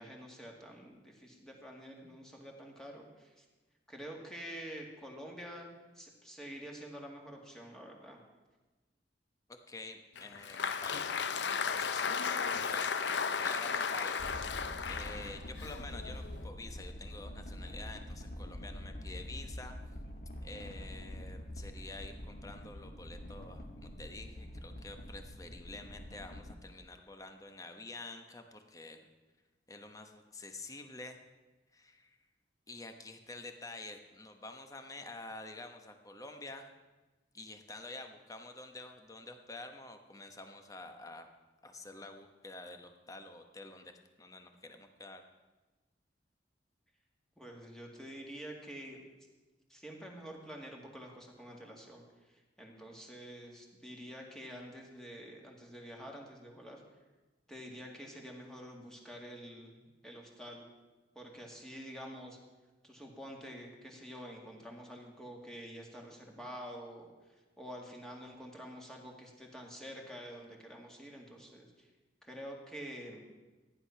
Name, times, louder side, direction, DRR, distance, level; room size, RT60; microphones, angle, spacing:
voice 1, 0.0-3.5 3.9-8.2 47.4-49.0 49.7-56.8 57.5-60.7 61.2-62.4 62.8-71.9 72.2-73.2, equal, 5° left, 0 dB, 2.0 m, -48 dB
voice 2, 9.5-14.3 14.9-19.7 20.4-29.1 29.7-31.2 31.7-32.2 32.7-36.7 37.3-41.3 41.6-43.9 44.2-45.2, left 2 dB, 20° left, 6 dB, 1.0 m, -48 dB
Applause, 10.2-16.5, left 6 dB, 75° left, 0.6 m, -35 dB
sound 1, 14.2-26.5, left 1 dB, 55° left, 1.5 m, -45 dB
14.5 x 10.0 x 5.8 m, 1.2 s
head